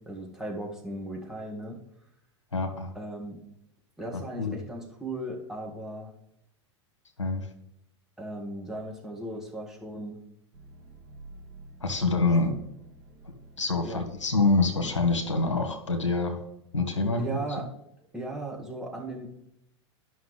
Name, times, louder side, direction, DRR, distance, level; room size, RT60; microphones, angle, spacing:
voice 1, 0.1-1.8 2.9-3.4 4.0-6.1 8.2-10.2 13.8-14.0 17.2-17.6 18.1-19.3, right 1 dB, 5° right, -2 dB, 1.9 m, -37 dB
voice 2, 2.5-2.9 4.1-4.6 7.2-7.5 11.8-12.5 13.6-16.4 16.7-17.7, left 3 dB, 85° left, 5 dB, 1.2 m, -26 dB
sound 1, 10.5-15.6, right 2 dB, 65° right, 1.8 m, -49 dB
11.0 x 5.7 x 3.2 m, 0.80 s
figure-of-eight pair, 90°, 15 cm